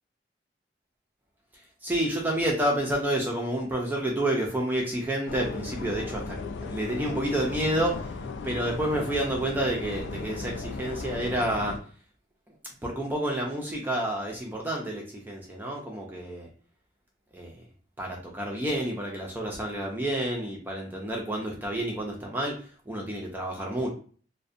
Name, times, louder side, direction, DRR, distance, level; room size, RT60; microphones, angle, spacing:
voice 1, 1.8-6.4 6.7-8.1 8.4-11.8 12.8-16.5 17.3-17.6 18.0-22.6 22.9-23.9, right 1 dB, 10° right, -1 dB, 0.4 m, -29 dB
sound 1, 5.3-11.8, left 4 dB, 90° left, 0.3 m, -36 dB
2.4 x 2.1 x 2.5 m, 0.43 s
head